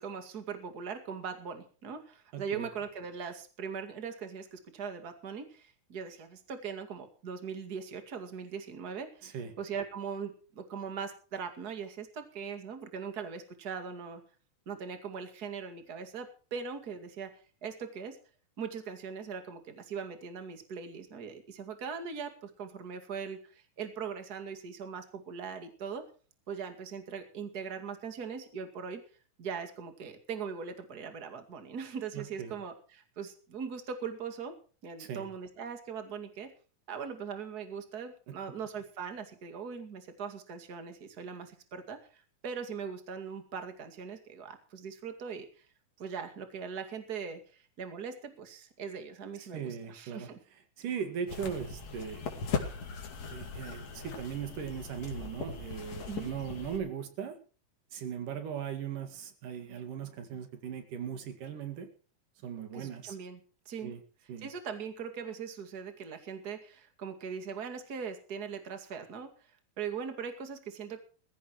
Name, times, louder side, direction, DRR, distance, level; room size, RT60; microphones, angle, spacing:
voice 1, 0.0-14.2 14.7-17.3 17.6-18.2 18.6-26.1 26.5-29.0 29.4-34.5 34.8-36.5 36.9-45.6 46.0-50.4 56.1-56.3 62.7-63.4 63.7-63.9 64.4-69.3 69.8-71.0, right 6 dB, 30° right, 6 dB, 2.4 m, -40 dB
voice 2, 2.3-2.7 9.2-9.5 32.1-32.5 35.0-35.2 38.3-38.4 49.4-50.3 50.8-52.2 53.3-57.4 57.9-61.9 62.4-63.2 63.8-64.0 64.3-64.5, right 8 dB, 85° right, 9 dB, 3.7 m, -38 dB
sound 1, 51.3-56.8, left 5 dB, 55° left, 3.4 m, -39 dB
21.0 x 15.0 x 3.1 m, 0.38 s
omnidirectional pair, 3.6 m